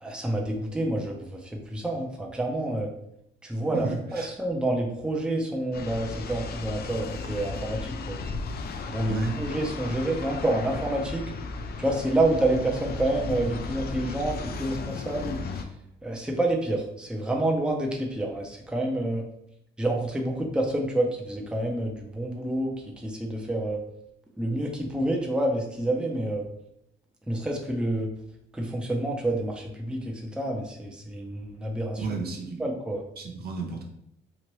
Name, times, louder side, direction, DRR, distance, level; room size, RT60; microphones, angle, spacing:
voice 1, 0.0-2.9 3.4-8.2 8.9-11.3 11.8-15.7 16.0-19.2 19.8-23.8 24.4-26.4 27.3-28.1 28.5-32.0 32.6-33.0, right 1 dB, 5° right, 0 dB, 0.6 m, -28 dB
voice 2, 3.7-4.3 9.1-9.4 32.0-32.6 33.2-33.8, right 4 dB, 50° right, 2 dB, 0.6 m, -32 dB
sound 1, 5.7-15.6, left 4 dB, 50° left, 0.4 m, -35 dB
3.0 x 2.5 x 3.0 m, 0.77 s
cardioid pair, 90°, 20 cm